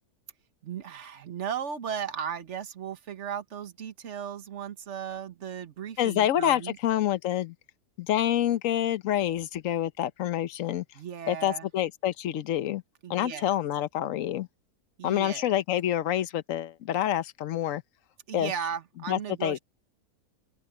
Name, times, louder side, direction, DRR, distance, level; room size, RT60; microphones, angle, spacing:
voice 1, 0.6-6.8 10.9-11.7 13.0-13.5 15.0-15.5 18.3-19.6, right 8 dB, 50° right, 1.5 m, -36 dB
voice 2, 6.0-7.5 8.0-10.8 11.3-12.8 13.1-14.5 15.0-17.8 18.3-18.5 19.1-19.6, left 12 dB, 65° left, 1.1 m, -27 dB
open air
omnidirectional pair, 1.6 m